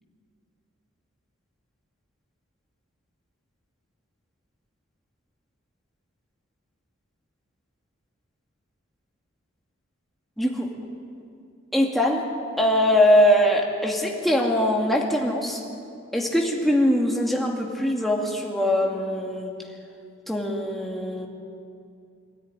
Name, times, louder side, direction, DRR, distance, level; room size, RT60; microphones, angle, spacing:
voice 1, 10.4-10.7 11.7-12.2 12.6-15.6 16.1-19.5 20.3-21.3, equal, ahead, -1 dB, 2.3 m, -22 dB
25.0 x 13.0 x 9.9 m, 2.4 s
head